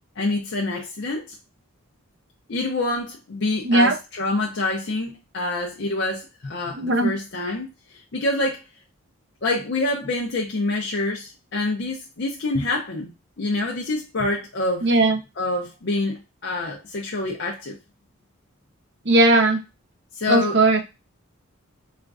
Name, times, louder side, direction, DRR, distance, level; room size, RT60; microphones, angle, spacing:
voice 1, 0.2-1.4 2.5-8.6 9.4-14.9 15.4-17.8 20.1-20.6, left 2 dB, 55° left, 0.6 m, -26 dB
voice 2, 3.6-3.9 6.7-7.1 14.8-15.2 19.1-19.6 20.3-20.8, right 2 dB, 55° right, 0.7 m, -17 dB
4.3 x 2.4 x 2.4 m
head